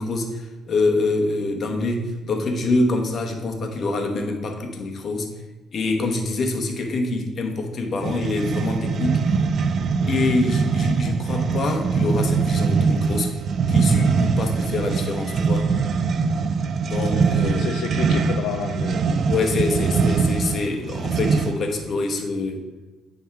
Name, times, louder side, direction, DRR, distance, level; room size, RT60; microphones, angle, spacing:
voice 1, 0.0-5.3 5.7-9.2 10.1-13.3 13.7-15.7 16.8-17.7 19.3-22.6, left 3 dB, 45° left, 3 dB, 1.1 m, -25 dB
sound 1, 8.0-21.7, right 5 dB, 45° right, 0.4 m, -22 dB
voice 2, 16.9-19.1, left 8 dB, 80° left, 5 dB, 0.4 m, -31 dB
9.4 x 3.6 x 4.5 m, 1.2 s
cardioid pair, 125°, 0 cm